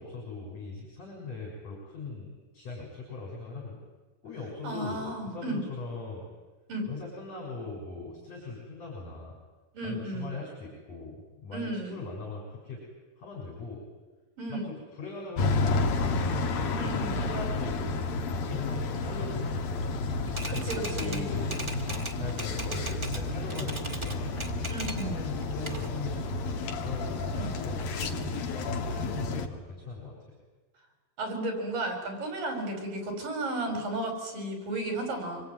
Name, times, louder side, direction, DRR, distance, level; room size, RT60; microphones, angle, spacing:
voice 1, 0.0-3.8 4.2-6.3 6.9-9.4 9.8-12.8 13.2-13.8 14.5-18.0 18.3-19.9 20.4-21.6 22.1-24.3 25.0-28.4 29.0-30.2, left 3 dB, 45° left, -2 dB, 7.4 m, -40 dB
voice 2, 4.6-5.6 6.7-6.8 9.7-10.3 11.5-12.0 14.4-14.6 16.8-17.2 20.5-21.3 24.7-25.2 27.3-27.5 28.9-29.1 31.2-35.4, right 2 dB, 70° right, 4 dB, 7.0 m, -34 dB
sound 1, 15.4-29.5, left 3 dB, 75° left, 3.6 m, -31 dB
Typewriter, 20.3-23.2 23.5-25.1 25.4-26.5, right 2 dB, 20° right, 0.7 m, -39 dB
26.5 x 23.0 x 9.3 m, 1.2 s
omnidirectional pair, 4.1 m